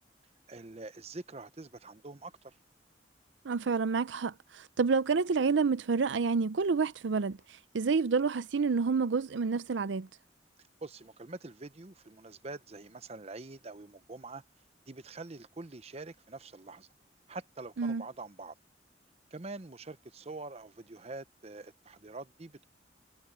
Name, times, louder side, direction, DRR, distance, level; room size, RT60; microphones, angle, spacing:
voice 1, 0.5-2.5 10.8-14.4 14.9-16.9 17.3-18.5 19.3-22.7, right 3 dB, 35° right, 0.8 m, -45 dB
voice 2, 3.4-7.4 7.7-10.1 17.8-18.0, right 5 dB, 85° right, 0.5 m, -28 dB
head